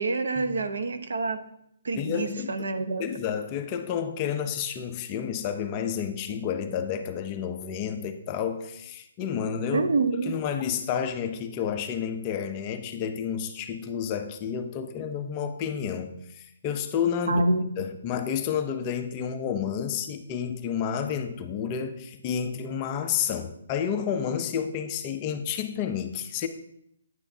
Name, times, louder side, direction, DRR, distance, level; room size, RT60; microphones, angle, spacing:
voice 1, 0.0-1.4 1.8-3.0 9.7-10.3 17.3-17.6, right 3 dB, 75° right, 9 dB, 0.8 m, -26 dB
voice 2, 2.0-2.5 3.0-9.9 10.3-17.4 17.8-26.5, left 8 dB, 20° left, 6 dB, 0.5 m, -30 dB
9.9 x 8.1 x 2.7 m, 0.75 s
hypercardioid pair, 170°, 0 cm